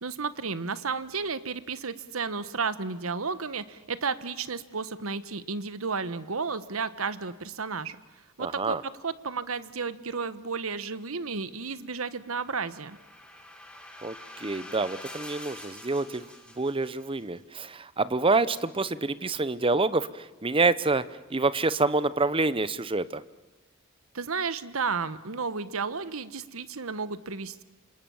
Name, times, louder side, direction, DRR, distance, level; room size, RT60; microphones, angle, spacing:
voice 1, 0.0-8.0 8.4-8.8 9.0-13.0 24.1-27.6, right 5 dB, 80° right, 14 dB, 1.2 m, -32 dB
voice 2, 8.4-8.8 14.0-16.3 16.6-21.0 21.3-23.2, right 3 dB, 25° right, 16 dB, 0.8 m, -27 dB
sound 1, 11.9-17.2, left 1 dB, 5° left, 3.8 m, -46 dB
28.5 x 26.5 x 7.2 m, 1.1 s
head